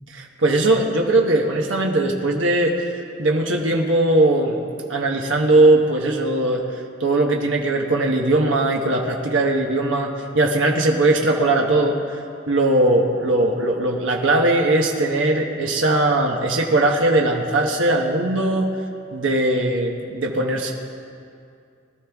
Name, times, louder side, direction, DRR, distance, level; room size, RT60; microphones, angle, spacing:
voice 1, 0.2-2.9 3.2-4.6 4.9-6.6 7.0-12.0 12.5-18.7 19.1-20.7, right 2 dB, 80° right, 0 dB, 1.2 m, -19 dB
21.0 x 12.5 x 3.5 m, 2.4 s
head